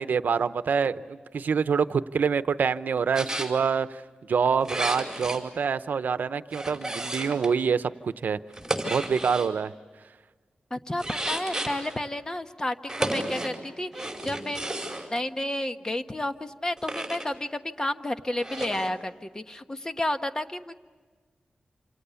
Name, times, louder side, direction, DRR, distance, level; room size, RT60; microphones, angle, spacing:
voice 1, 0.0-4.0 4.3-8.4 8.9-9.7, right 6 dB, 85° right, 12 dB, 0.8 m, -26 dB
sound 1, 3.1-3.5 4.6-5.4 6.5-7.5 8.5-9.5 11.0-12.0 12.9-13.6 13.9-15.1 16.8-17.3 18.4-18.9, right 1 dB, 10° right, 4.8 m, -32 dB
voice 2, 10.7-14.6 15.1-20.7, left 1 dB, 25° left, 8 dB, 1.2 m, -31 dB
28.0 x 27.5 x 7.0 m, 1.4 s
wide cardioid pair, 85°, 3 cm